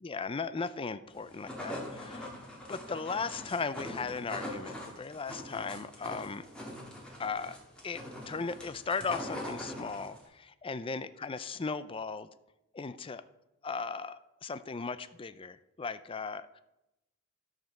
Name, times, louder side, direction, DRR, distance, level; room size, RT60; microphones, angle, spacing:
voice 1, 0.0-2.4 2.7-6.5 7.2-7.6 7.8-12.3 12.7-13.2 13.6-16.6, left 4 dB, 25° left, 14 dB, 0.4 m, -37 dB
sound 1, 1.2-10.3, left 1 dB, 5° left, 2.2 m, -42 dB
12.5 x 5.1 x 6.4 m, 0.92 s
head